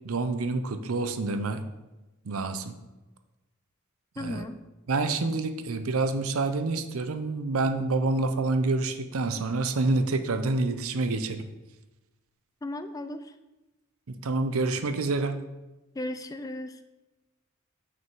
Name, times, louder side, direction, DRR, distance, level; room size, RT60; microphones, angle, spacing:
voice 1, 0.0-1.6 2.3-2.7 4.2-4.4 4.9-11.5 14.1-15.4, right 3 dB, 75° right, 8 dB, 0.6 m, -27 dB
voice 2, 4.2-4.6 12.6-13.2 16.0-16.8, left 1 dB, 15° left, 10 dB, 0.3 m, -35 dB
6.1 x 5.8 x 4.6 m, 1.1 s
head